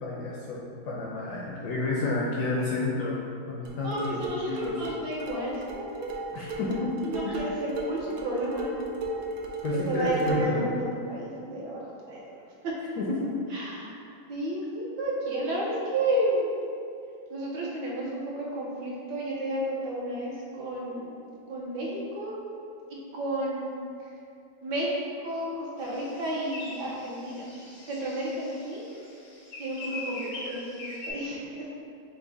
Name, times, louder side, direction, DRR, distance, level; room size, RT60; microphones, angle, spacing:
voice 1, 0.0-3.2 3.5-4.2 4.5-4.7 6.3-6.9 7.2-7.4 9.6-10.7 13.0-13.3, left 2 dB, 70° left, -4 dB, 1.0 m, -30 dB
sound 1, 3.6-10.6, right 1 dB, 85° right, 0.7 m, -36 dB
voice 2, 3.8-6.2 7.0-8.7 9.8-12.7 13.5-13.9 14.3-16.5 17.3-21.2 21.5-22.4 23.1-23.7 24.0-24.1 24.6-27.5 27.8-28.8 29.6-31.4, right 1 dB, 70° right, -5 dB, 1.2 m, -32 dB
sound 2, 25.8-31.1, left 2 dB, 90° left, 1.8 m, -42 dB
5.9 x 2.1 x 3.9 m, 2.5 s
omnidirectional pair, 2.2 m